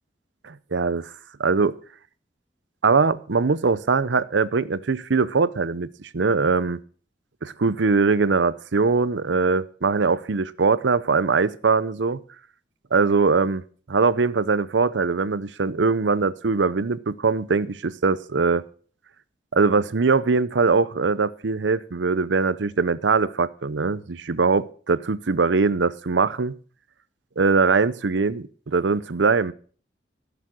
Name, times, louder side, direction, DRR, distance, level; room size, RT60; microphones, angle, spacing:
voice 1, 0.4-1.1 1.4-1.8 2.8-6.8 7.4-12.2 12.9-13.6 13.9-18.6 19.5-26.5 27.4-28.4 28.7-29.5, right 4 dB, 80° right, 0.7 m, -21 dB
15.0 x 6.9 x 6.3 m
head